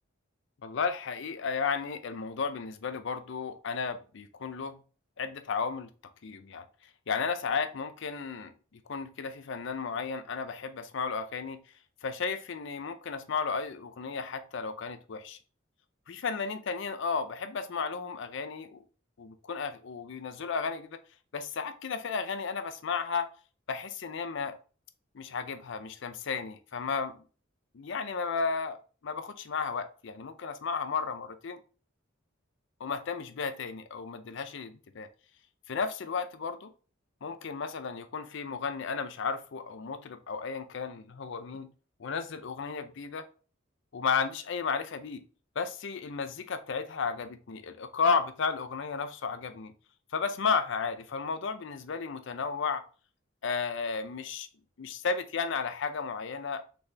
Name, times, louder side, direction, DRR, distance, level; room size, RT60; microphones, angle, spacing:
voice 1, 0.6-4.7 5.2-5.9 6.2-6.6 7.1-8.5 8.9-11.6 12.0-15.4 16.1-18.8 19.2-21.0 21.3-23.3 23.7-24.6 25.1-27.2 27.7-28.8 29.0-31.6 32.8-35.1 35.7-36.7 37.2-41.7 42.0-43.3 43.9-45.2 45.6-49.7 50.1-52.8 53.4-54.5 54.8-56.6, left 5 dB, 65° left, 0.5 m, -33 dB
4.1 x 3.4 x 3.1 m
head